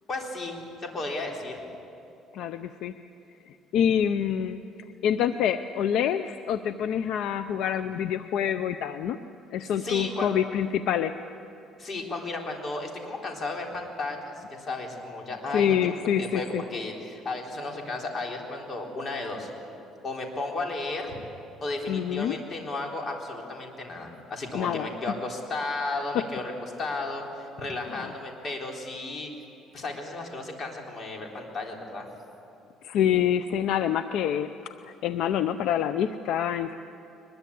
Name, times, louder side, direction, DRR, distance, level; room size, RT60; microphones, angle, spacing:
voice 1, 0.1-1.6 9.8-10.3 11.8-15.8 16.2-19.5 20.0-21.1 21.6-26.5 26.8-29.3 29.7-32.1, left 2 dB, 35° left, 1 dB, 3.8 m, -34 dB
voice 2, 2.3-2.9 3.7-4.6 5.0-9.2 9.5-11.1 15.5-16.6 21.9-22.4 24.5-24.9 26.1-26.2 32.8-36.8, left 9 dB, 70° left, 11 dB, 0.6 m, -26 dB
22.5 x 21.0 x 8.5 m, 2.7 s
cardioid pair, 125°, 0 cm